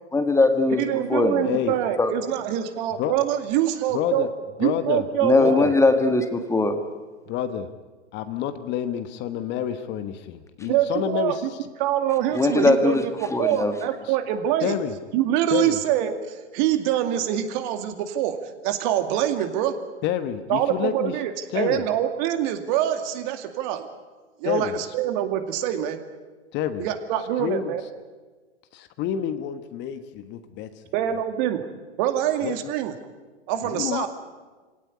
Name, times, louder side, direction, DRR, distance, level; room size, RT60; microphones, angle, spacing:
voice 1, 0.1-0.8 1.1-1.5 2.0-2.1 5.2-6.8 12.3-13.0 13.3-13.7, left 3 dB, 10° left, 8 dB, 1.6 m, -20 dB
voice 2, 0.8-4.3 4.6-5.8 10.7-11.4 11.8-14.7 15.1-18.4 18.6-19.7 20.5-23.9 24.4-26.0 26.8-27.8 30.9-31.6 32.0-32.9 33.5-34.1, right 11 dB, 40° right, 8 dB, 2.4 m, -25 dB
voice 3, 1.4-1.7 3.0-3.1 3.9-4.3 4.6-5.0 5.4-5.7 7.3-7.7 8.1-11.4 14.6-14.9 15.5-15.8 20.0-21.1 21.5-21.8 24.4-24.7 26.5-26.9 27.3-27.7 28.7-30.7 32.4-32.7 33.6-34.1, left 10 dB, 30° left, 10 dB, 1.3 m, -28 dB
25.0 x 17.5 x 9.7 m, 1.3 s
figure-of-eight pair, 110°, 35 cm